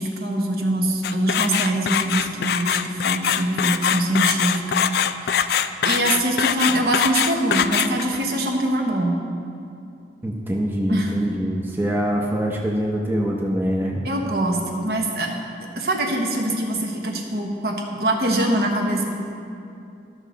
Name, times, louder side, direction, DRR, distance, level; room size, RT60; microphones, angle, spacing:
voice 1, 0.0-4.6 5.2-5.4 5.8-9.2 10.9-11.1 14.0-15.3 15.6-19.1, right 1 dB, 60° right, 1 dB, 1.1 m, -23 dB
sound 1, 1.0-8.2, left 8 dB, 60° left, 0.3 m, -22 dB
voice 2, 10.2-14.0, equal, 10° right, -1 dB, 0.6 m, -24 dB
13.0 x 6.5 x 4.0 m, 2.5 s
head